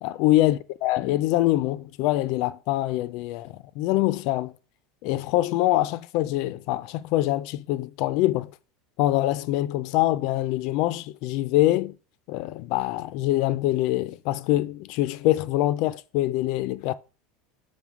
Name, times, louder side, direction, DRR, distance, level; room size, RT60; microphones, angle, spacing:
voice 1, 0.0-4.5 5.0-8.5 9.0-11.9 12.3-16.9, left 16 dB, 45° left, 0.3 m, -24 dB
6.3 x 3.6 x 6.1 m
supercardioid pair, 175°, 0 cm